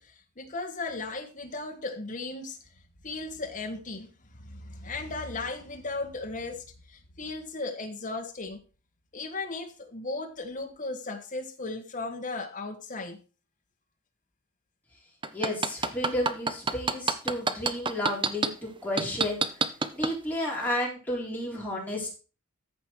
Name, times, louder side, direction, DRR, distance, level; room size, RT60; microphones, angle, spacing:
voice 1, 0.0-2.6 3.0-8.6 9.1-13.2, left 3 dB, 35° left, 1.6 m, -36 dB
sound 1, 15.2-18.5 19.0-20.1 20.6-20.7, right 4 dB, 20° right, 0.7 m, -25 dB
voice 2, 15.3-19.4 19.9-22.1, left 1 dB, 10° left, 3.8 m, -32 dB
14.0 x 5.2 x 4.6 m
head